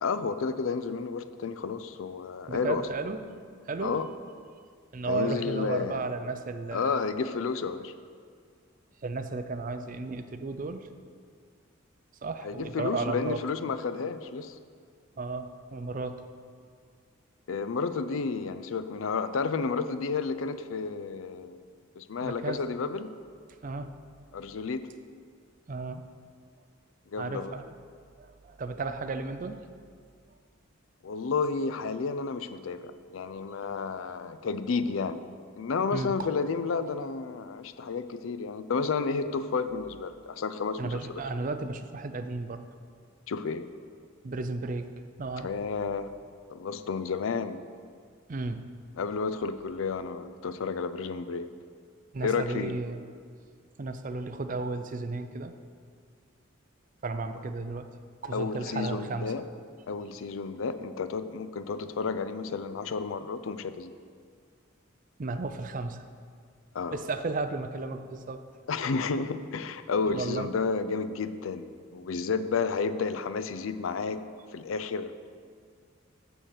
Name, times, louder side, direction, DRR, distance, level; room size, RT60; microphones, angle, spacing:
voice 1, 0.0-2.8 3.8-4.1 5.1-6.0 6.7-7.9 12.4-14.6 17.5-21.6 22.0-23.1 24.3-24.9 27.1-27.5 31.0-35.2 35.6-41.2 43.3-43.7 45.4-46.1 46.5-47.6 49.0-51.5 52.2-52.7 58.3-59.4 59.9-63.9 66.7-67.0 68.7-74.2 74.5-75.2, left 5 dB, 85° left, 12 dB, 0.5 m, -31 dB
voice 2, 2.5-3.2 3.7-3.9 4.9-7.0 9.0-10.9 12.2-13.4 15.2-16.2 22.2-22.6 23.6-23.9 25.7-26.1 27.2-27.6 28.2-29.6 35.9-36.3 40.8-42.6 44.2-44.9 45.2-45.5 48.3-48.7 52.1-53.0 53.8-55.5 57.0-57.9 58.2-59.3 65.2-66.0 66.9-68.4 70.0-70.5, right 3 dB, 40° right, 9 dB, 0.5 m, -34 dB
6.7 x 6.3 x 7.5 m, 2.1 s
head